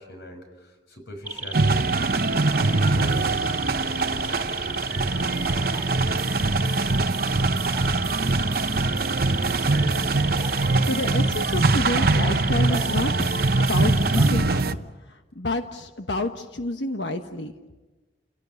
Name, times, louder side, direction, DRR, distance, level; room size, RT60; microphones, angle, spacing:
voice 1, 0.0-1.9 2.6-5.9, left 1 dB, 65° left, 5 dB, 5.9 m, -40 dB
sound 1, 1.3-14.3, right 2 dB, 10° right, 2.2 m, -33 dB
sound 2, 1.5-14.7, right 3 dB, 55° right, 0.9 m, -23 dB
voice 2, 10.8-13.3 13.5-17.5, left 2 dB, 80° left, 6 dB, 1.3 m, -29 dB
30.0 x 17.5 x 9.6 m, 1.2 s
head